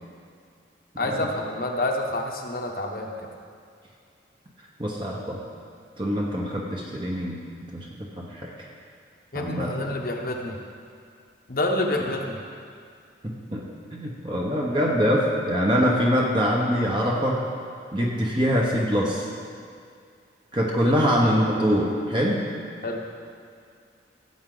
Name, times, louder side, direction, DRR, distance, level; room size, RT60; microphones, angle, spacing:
voice 1, 1.0-3.1 9.3-10.6 11.5-12.4 20.8-21.0 22.8-23.0, left 1 dB, 50° left, 1 dB, 1.0 m, -28 dB
voice 2, 4.8-5.4 6.0-7.4 7.7-7.8 8.2-8.5 9.3-9.9 13.2-17.5 17.9-19.3 20.5-22.4, equal, 25° right, -3 dB, 1.1 m, -24 dB
15.5 x 7.9 x 3.9 m, 2.3 s
head